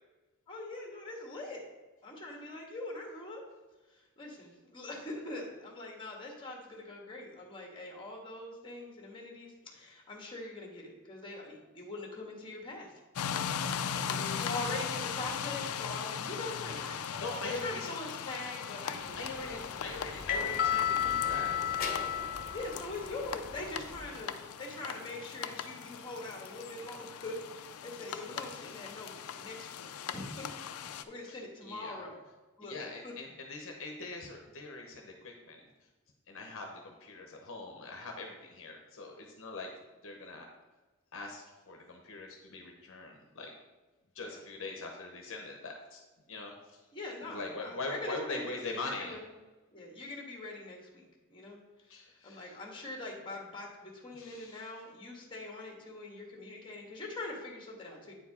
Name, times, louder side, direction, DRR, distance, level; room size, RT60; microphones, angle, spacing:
voice 1, 0.5-1.6 2.0-3.4 3.9-12.9 14.1-19.6 22.5-29.1 29.4-30.4 30.7-32.2 32.6-32.8 33.0-33.1 44.2-44.4 46.9-49.2 49.7-51.0 51.3-51.6 51.9-52.0 52.2-58.1, left 2 dB, 25° left, 0 dB, 1.6 m, -43 dB
sound 1, 13.2-31.0, left 7 dB, 85° left, 0.4 m, -39 dB
voice 2, 17.1-17.9 19.2-21.8 28.4-28.7 31.3-31.9 32.6-35.6 36.3-39.7 40.0-40.4 41.1-43.5 44.1-46.0 46.3-46.8 47.2-49.2 51.9-52.6 54.1-54.7 57.8-57.9, left 3 dB, 65° left, 2 dB, 0.9 m, -42 dB
sound 2, 19.2-24.0, left 8 dB, 45° left, 1.0 m, -33 dB
9.0 x 4.6 x 4.2 m, 1.2 s
head